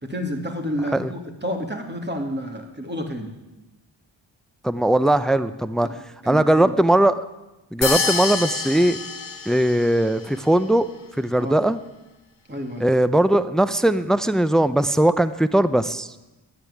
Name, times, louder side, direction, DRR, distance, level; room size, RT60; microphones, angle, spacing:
voice 1, 0.0-3.3 5.8-5.9 6.2-6.7 11.4-11.5 12.5-12.9, equal, 20° right, 3 dB, 2.6 m, -30 dB
voice 2, 4.6-5.9 6.3-7.3 7.7-9.0 9.5-10.9 11.2-11.8 12.8-16.1, right 1 dB, ahead, 14 dB, 0.6 m, -19 dB
sound 1, 7.8-10.1, left 5 dB, 65° left, 1.5 m, -26 dB
10.5 x 9.2 x 9.9 m, 1.0 s
cardioid pair, 55°, 46 cm